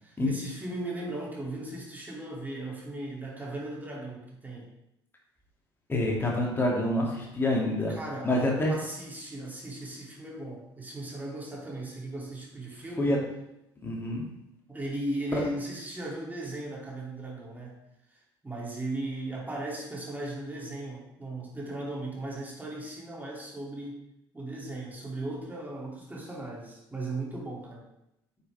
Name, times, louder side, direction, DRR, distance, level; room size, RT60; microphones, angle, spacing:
voice 1, 0.0-4.7 7.9-13.2 14.7-17.8 18.1-24.0 24.3-27.8, right 2 dB, 15° right, -3 dB, 3.0 m, -37 dB
voice 2, 5.9-7.9 8.2-8.7 13.0-13.2 13.8-14.2 15.3-15.4, left 1 dB, 15° left, -2 dB, 2.8 m, -27 dB
8.9 x 7.0 x 3.6 m, 0.86 s
figure-of-eight pair, 55°, 13 cm